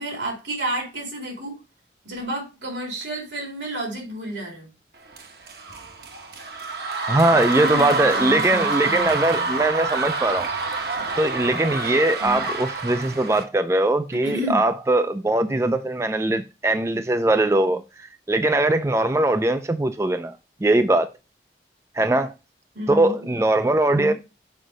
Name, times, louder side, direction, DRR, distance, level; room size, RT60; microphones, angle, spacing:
voice 1, 0.0-1.5 2.0-4.7 7.4-9.5 12.2-12.4 14.2-14.6 22.7-23.1 23.9-24.1, right 1 dB, 85° right, 3.2 m, -31 dB
sound 1, 5.1-13.4, right 3 dB, 60° right, 1.0 m, -27 dB
voice 2, 7.1-10.5 11.2-20.3 20.6-21.1 22.0-22.3 22.9-24.1, right 2 dB, 15° right, 0.3 m, -21 dB
6.3 x 5.2 x 3.8 m
head